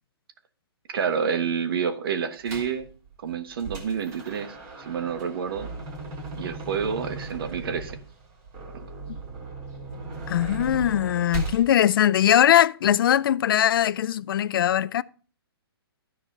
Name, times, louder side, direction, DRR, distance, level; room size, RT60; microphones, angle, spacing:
voice 1, 0.9-2.9 3.2-5.7 6.3-8.0, right 6 dB, 60° right, 1.3 m, -28 dB
sound 1, 2.5-2.8 3.3-11.6, right 3 dB, 25° right, 3.1 m, -37 dB
voice 2, 10.3-15.0, left 11 dB, 55° left, 0.4 m, -21 dB
12.5 x 4.7 x 5.5 m
hypercardioid pair, 145°, 14 cm